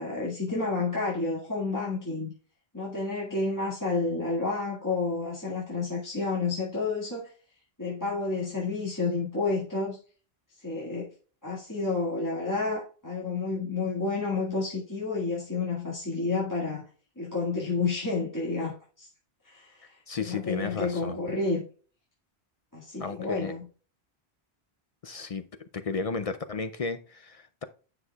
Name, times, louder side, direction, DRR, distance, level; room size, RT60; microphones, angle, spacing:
voice 1, 0.0-2.3 2.7-7.3 7.8-10.0 10.6-11.1 11.4-16.8 17.2-19.1 19.4-21.6 22.7-23.6, left 3 dB, 15° left, 1.8 m, -30 dB
voice 2, 20.1-21.2 23.0-23.5 25.0-25.5 25.7-27.6, left 4 dB, 50° left, 0.5 m, -33 dB
9.6 x 6.2 x 2.3 m
omnidirectional pair, 1.1 m